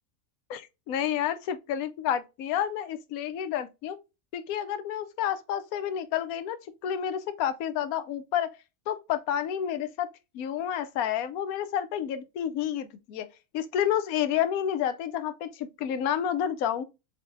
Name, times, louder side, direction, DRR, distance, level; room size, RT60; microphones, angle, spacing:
voice 1, 0.5-4.0 4.3-6.6 6.8-8.5 8.9-10.1 10.3-13.3 13.5-16.8, left 9 dB, 80° left, 1.1 m, -30 dB
7.1 x 2.8 x 2.5 m
omnidirectional pair, 1.5 m